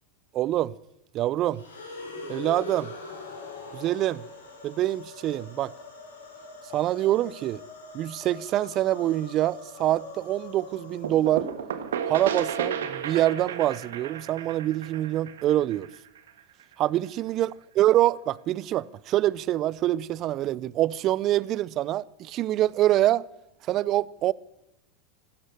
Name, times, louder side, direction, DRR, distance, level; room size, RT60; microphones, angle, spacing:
voice 1, 0.3-0.7 1.1-1.6 2.3-2.9 3.7-4.2 4.6-5.7 6.7-7.6 7.9-11.5 12.1-15.9 16.8-17.5 17.8-23.2 23.7-24.3, right 14 dB, 40° right, 0.5 m, -25 dB
sound 1, 1.5-11.7, left 3 dB, 85° left, 5.7 m, -43 dB
sound 2, 11.0-16.6, right 8 dB, 75° right, 1.5 m, -33 dB
16.5 x 12.5 x 6.8 m
hypercardioid pair, 90°, 0 cm